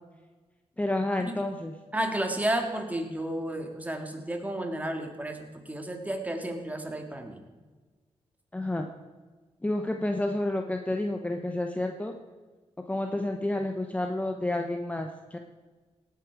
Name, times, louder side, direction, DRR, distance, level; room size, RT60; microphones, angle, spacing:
voice 1, 0.8-1.7 8.5-8.9 9.6-12.1 12.9-15.4, left 1 dB, 10° left, 4 dB, 0.9 m, -30 dB
voice 2, 1.9-7.4, right 1 dB, 15° right, 4 dB, 2.0 m, -32 dB
17.5 x 8.6 x 4.7 m, 1.3 s
cardioid pair, 90°, 12 cm